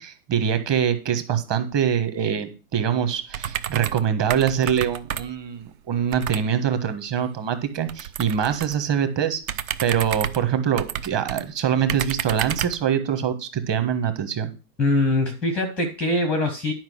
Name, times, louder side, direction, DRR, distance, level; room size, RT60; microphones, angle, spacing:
voice 1, 0.0-9.4 9.8-14.5, right 8 dB, 25° right, 9 dB, 1.2 m, -24 dB
sound 1, 3.3-4.1 4.3-5.5 6.1-6.5 7.9-8.8 9.4-11.4 11.9-12.8, right 9 dB, 65° right, 0.9 m, -30 dB
voice 2, 14.8-16.7, left 2 dB, 5° left, 8 dB, 0.5 m, -22 dB
10.5 x 5.0 x 6.3 m, 0.33 s
hypercardioid pair, 140°, 46 cm